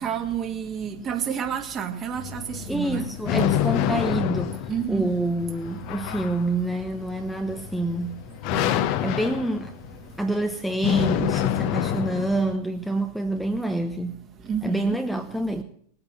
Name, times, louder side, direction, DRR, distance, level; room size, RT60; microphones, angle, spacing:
voice 1, 0.0-3.1 4.7-5.0 8.5-8.7 14.5-15.0, right 8 dB, 25° right, 5 dB, 2.2 m, -29 dB
sound 1, 2.1-12.6, left 11 dB, 45° left, 1.0 m, -28 dB
voice 2, 2.7-8.2 8.6-9.7 10.2-14.2 14.6-15.6, right 1 dB, ahead, 5 dB, 0.9 m, -27 dB
19.5 x 8.8 x 7.5 m, 0.63 s
figure-of-eight pair, 90°, 0 cm